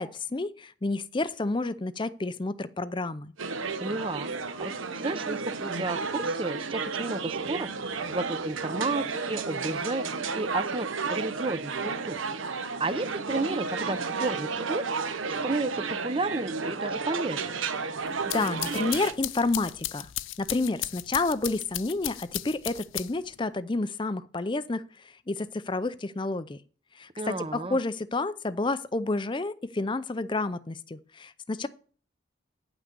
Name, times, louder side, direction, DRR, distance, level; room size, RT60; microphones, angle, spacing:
voice 1, 0.0-3.3 18.2-20.1 20.4-26.6 27.0-31.7, left 2 dB, 25° left, 14 dB, 0.5 m, -30 dB
sound 1, 3.4-19.1, right 4 dB, 80° right, 0.9 m, -32 dB
voice 2, 3.8-10.0 10.3-12.2 12.5-14.8 15.3-17.6 27.2-27.8, right 2 dB, 25° right, 14 dB, 0.6 m, -32 dB
sound 2, 18.1-23.4, left 16 dB, 75° left, 0.4 m, -36 dB
9.7 x 6.0 x 6.7 m, 0.42 s
head